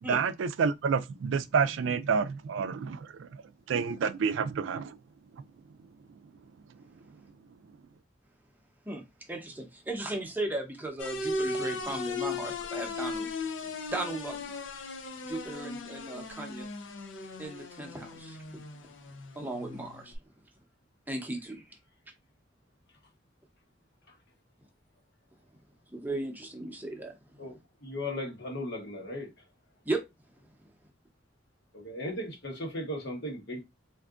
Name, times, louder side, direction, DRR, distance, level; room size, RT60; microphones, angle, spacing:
voice 1, 0.0-3.4 3.7-5.0 5.3-5.4, right 5 dB, 85° right, 0.4 m, -29 dB
voice 2, 9.3-13.3 13.9-14.6 15.3-16.7 17.4-18.6 19.3-20.1 21.1-21.6 25.9-27.1 29.9-30.0, right 2 dB, 10° right, 0.7 m, -36 dB
sound 1, 11.0-20.2, left 3 dB, 85° left, 0.5 m, -37 dB
voice 3, 27.4-29.3 31.7-33.6, left 1 dB, 60° left, 1.1 m, -37 dB
3.6 x 2.6 x 2.4 m
head